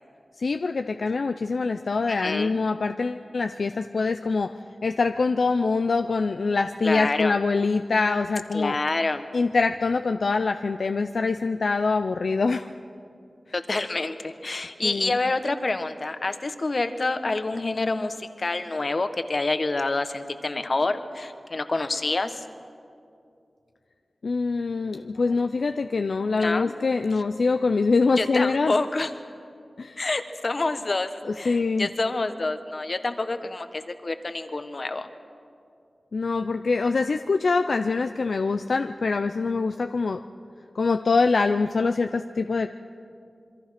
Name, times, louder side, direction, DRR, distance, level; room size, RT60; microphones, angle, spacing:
voice 1, 0.4-4.5 4.8-8.8 9.3-12.7 14.8-15.2 24.2-28.7 29.8-30.0 31.2-31.9 36.1-40.2 40.7-42.7, left 4 dB, 80° left, 7 dB, 0.6 m, -24 dB
voice 2, 2.1-2.6 6.8-7.3 8.5-9.2 13.5-22.4 25.1-25.3 26.4-26.7 28.2-29.1 30.0-31.1 31.4-35.1, left 2 dB, 60° left, 9 dB, 1.5 m, -27 dB
27.0 x 23.0 x 6.0 m, 2.5 s
cardioid pair, 45°, 0 cm